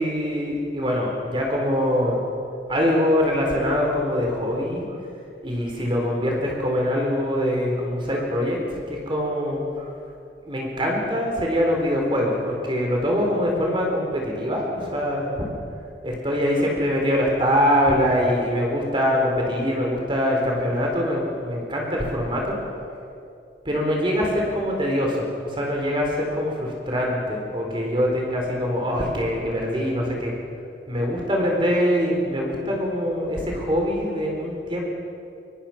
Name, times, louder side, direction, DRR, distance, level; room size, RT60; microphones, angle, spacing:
voice 1, 0.0-2.2 2.7-4.8 5.4-9.9 10.5-15.5 16.0-22.6 23.6-25.3 25.5-30.3 30.9-34.8, equal, 30° right, 0 dB, 4.0 m, -23 dB
23.5 x 23.0 x 5.9 m, 2.5 s
head